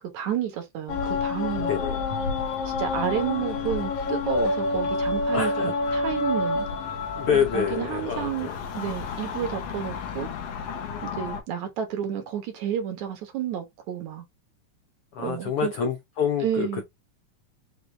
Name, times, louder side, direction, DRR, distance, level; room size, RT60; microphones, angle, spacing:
voice 1, 0.1-1.8 2.7-6.7 7.3-10.3 11.0-14.2 15.2-15.7 16.4-16.8, right 9 dB, 65° right, 2.4 m, -30 dB
sound 1, 0.9-11.4, left 3 dB, 65° left, 1.8 m, -29 dB
voice 2, 1.6-2.0 5.3-5.7 7.1-8.5 15.1-16.8, left 8 dB, 85° left, 1.2 m, -27 dB
6.2 x 2.6 x 3.2 m
omnidirectional pair, 3.7 m